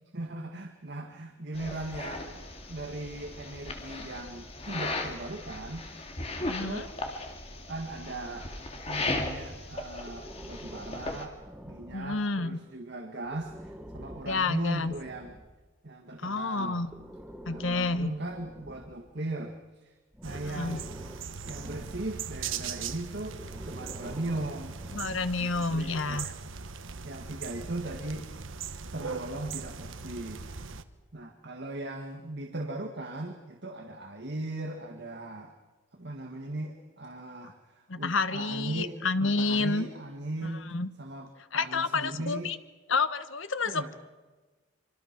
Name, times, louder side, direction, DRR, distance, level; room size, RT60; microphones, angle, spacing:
voice 1, 0.1-2.4 2.7-6.1 6.4-6.9 7.7-8.5 8.9-11.4 11.7-15.4 15.8-16.9 17.5-20.0 20.2-21.0 21.4-26.2 27.0-28.3 28.9-30.4 31.1-35.5 35.9-40.7 41.0-42.5 43.6-44.0, right 2 dB, 55° right, 4 dB, 1.7 m, -38 dB
sound 1, 1.5-11.2, left 2 dB, 30° left, 2.3 m, -37 dB
voice 2, 6.5-6.9 11.9-12.6 14.3-14.9 16.2-16.9 17.5-18.1 20.5-20.8 24.9-26.3 37.9-39.9 40.7-40.9 41.5-42.6 42.9-43.8, left 3 dB, 70° left, 12 dB, 1.1 m, -29 dB
Breathing, 10.0-12.5 13.2-15.6 16.7-19.5 20.1-22.4 23.3-25.6, equal, 5° right, 1.4 m, -47 dB
sound 2, 20.2-30.8, right 6 dB, 70° right, 1.1 m, -40 dB
25.5 x 24.5 x 6.0 m, 1.3 s
head